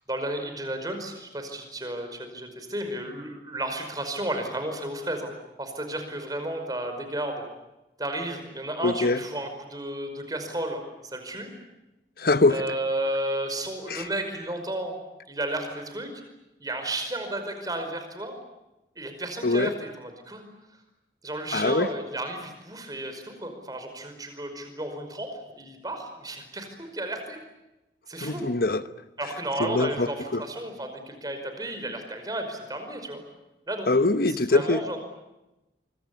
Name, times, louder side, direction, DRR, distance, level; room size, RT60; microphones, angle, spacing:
voice 1, 0.1-5.3 5.6-7.4 8.0-11.5 12.5-15.0 15.3-16.2 16.6-18.4 19.0-20.4 21.2-25.3 25.6-27.4 28.1-28.4 29.2-33.2 33.7-33.9 34.5-35.0, right 1 dB, 20° right, 6 dB, 5.2 m, -33 dB
voice 2, 8.8-9.2 12.2-12.6 13.9-14.1 19.4-19.7 21.5-21.9 28.2-28.8 29.6-30.4 33.9-34.8, left 2 dB, 55° left, 12 dB, 1.2 m, -23 dB
25.0 x 25.0 x 8.6 m, 0.98 s
head